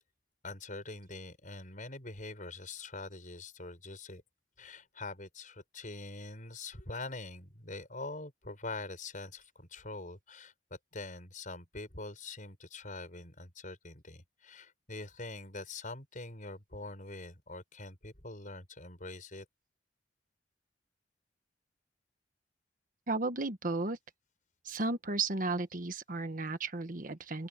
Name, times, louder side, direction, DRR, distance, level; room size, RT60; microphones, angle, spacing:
voice 1, 0.4-4.2 4.6-10.5 10.9-19.4, left 2 dB, 45° left, 6.2 m, -44 dB
voice 2, 23.1-24.0 24.6-27.5, right 3 dB, 50° right, 1.4 m, -34 dB
open air
head